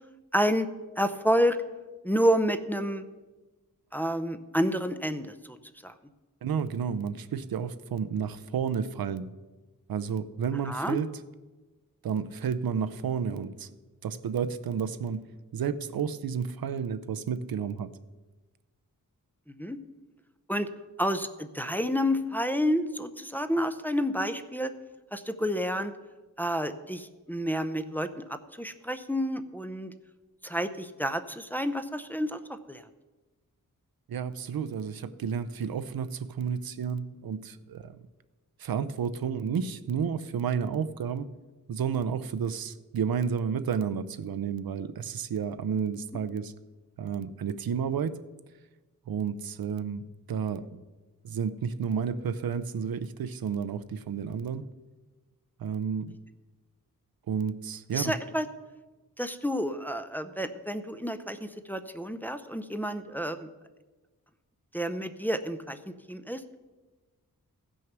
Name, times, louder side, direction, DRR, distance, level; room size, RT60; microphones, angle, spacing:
voice 1, 0.3-0.7 1.0-1.6 2.0-3.0 3.9-5.3 5.8-5.9 10.7-11.0 19.6-19.8 20.5-20.7 21.0-24.7 25.1-25.9 26.4-28.2 28.6-29.9 30.4-32.8 57.9-58.5 59.2-63.5 64.7-65.8 66.1-66.4, equal, 5° left, 0.5 m, -29 dB
voice 2, 6.4-9.3 9.9-11.1 12.0-13.7 14.0-17.9 34.1-38.0 38.6-41.3 41.7-46.5 47.0-48.2 49.1-50.8 51.2-54.6 55.6-56.1 57.3-58.2, right 7 dB, 85° right, 0.6 m, -31 dB
15.5 x 6.4 x 6.0 m
wide cardioid pair, 140°, 35 cm